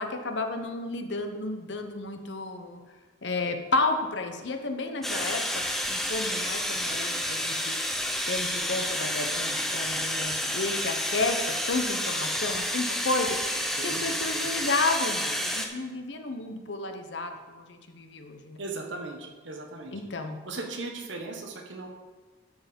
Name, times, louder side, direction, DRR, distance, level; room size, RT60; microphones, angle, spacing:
voice 1, 0.0-2.8 3.2-5.4 5.9-7.7 8.3-18.6 19.9-20.4, left 3 dB, 65° left, 6 dB, 0.9 m, -32 dB
sound 1, 5.0-15.7, equal, ahead, 0.6 m, -30 dB
voice 2, 13.7-14.0 14.3-14.5 18.6-19.9 20.4-21.9, right 3 dB, 70° right, 3 dB, 1.3 m, -37 dB
11.5 x 4.8 x 5.2 m, 1.4 s
head